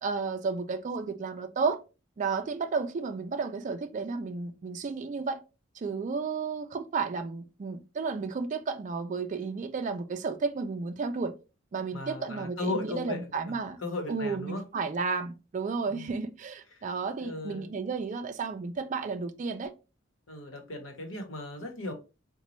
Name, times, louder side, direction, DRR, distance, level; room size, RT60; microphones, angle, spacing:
voice 1, 0.0-1.8 2.2-5.4 5.7-11.3 11.7-13.8 14.1-19.7, right 4 dB, 40° right, 0.3 m, -32 dB
voice 2, 11.9-14.6 15.9-16.1 17.2-17.7 20.3-21.9, left 2 dB, 80° left, 1.0 m, -37 dB
3.9 x 2.2 x 3.1 m
head